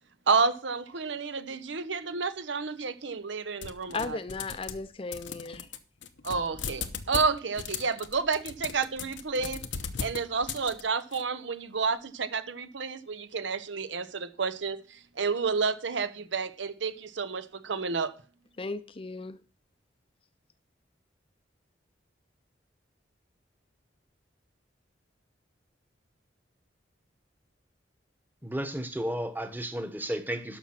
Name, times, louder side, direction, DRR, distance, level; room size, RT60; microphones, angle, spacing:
voice 1, 0.3-4.0 6.2-9.6 10.0-14.8 15.2-18.1, right 5 dB, 80° right, 0.8 m, -30 dB
sound 1, 3.6-4.9 5.1-11.2, left 6 dB, 80° left, 0.9 m, -38 dB
voice 2, 3.9-5.7 18.6-19.4, left 3 dB, 30° left, 0.6 m, -36 dB
voice 3, 28.4-30.6, right 1 dB, 10° right, 1.1 m, -33 dB
12.5 x 5.9 x 5.8 m
head